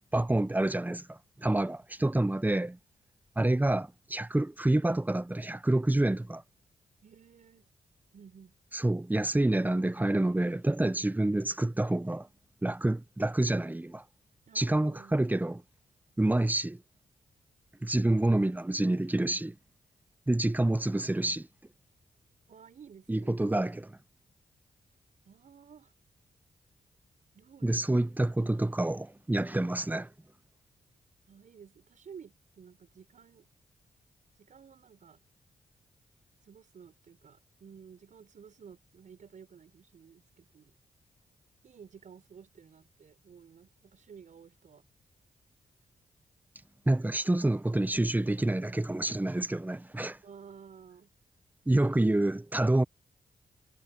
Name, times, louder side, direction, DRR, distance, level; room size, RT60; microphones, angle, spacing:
voice 1, 0.1-2.8 3.4-6.4 8.7-12.3 12.6-14.0 14.5-15.6 16.2-16.8 17.8-19.5 20.3-21.5 23.1-24.0 27.6-30.1 46.9-50.2 51.7-52.8, right 1 dB, 10° right, 1.0 m, -28 dB
voice 2, 1.4-1.7 7.0-7.7 8.1-8.6 14.5-15.2 22.5-23.5 25.3-25.9 27.3-27.9 29.6-29.7 31.3-33.5 34.4-35.2 36.4-40.7 41.6-44.8 50.2-51.1, right 7 dB, 65° right, 5.2 m, -53 dB
cardioid pair, 55°, 14 cm